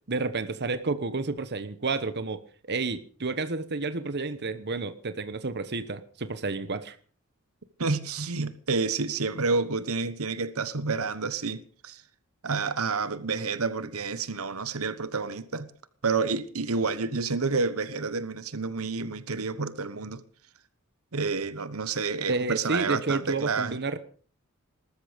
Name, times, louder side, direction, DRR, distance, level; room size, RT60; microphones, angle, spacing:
voice 1, 0.1-2.4 2.7-7.0 22.3-24.0, right 3 dB, 50° right, 1.1 m, -30 dB
voice 2, 7.8-12.0 12.4-15.7 16.0-20.2 21.1-23.8, right 4 dB, 85° right, 1.3 m, -29 dB
20.5 x 13.5 x 5.2 m
head